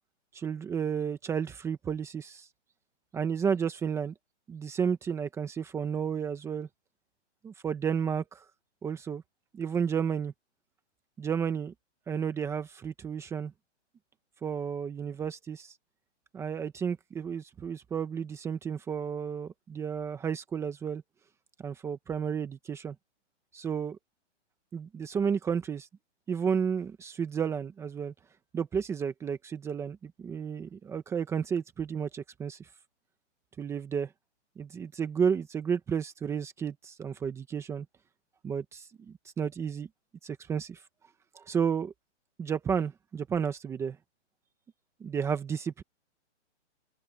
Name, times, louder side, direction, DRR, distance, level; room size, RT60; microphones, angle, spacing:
voice 1, 0.3-2.5 3.1-4.1 4.5-6.7 7.4-8.4 8.8-9.2 9.5-10.3 11.2-11.7 12.1-13.5 14.4-15.7 16.3-21.0 21.6-22.9 23.5-24.0 24.7-25.9 26.3-28.1 28.5-32.6 33.6-34.1 34.6-37.8 38.4-38.9 39.4-39.9 40.2-40.8 41.3-41.9 42.4-44.0 45.0-45.8, right 7 dB, 5° right, 1.1 m, -32 dB
hypercardioid pair, 160°, 36 cm